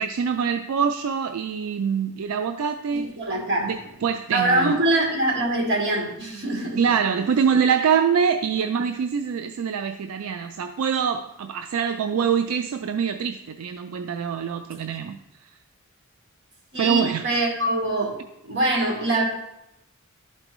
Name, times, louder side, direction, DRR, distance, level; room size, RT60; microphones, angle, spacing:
voice 1, 0.0-3.1 3.6-4.8 6.8-15.5 16.8-17.3, right 7 dB, 80° right, 7 dB, 0.4 m, -24 dB
voice 2, 2.9-3.7 4.3-6.8 16.7-18.2 18.4-19.2, right 2 dB, 55° right, -4 dB, 2.3 m, -23 dB
11.5 x 4.4 x 3.0 m, 0.87 s
head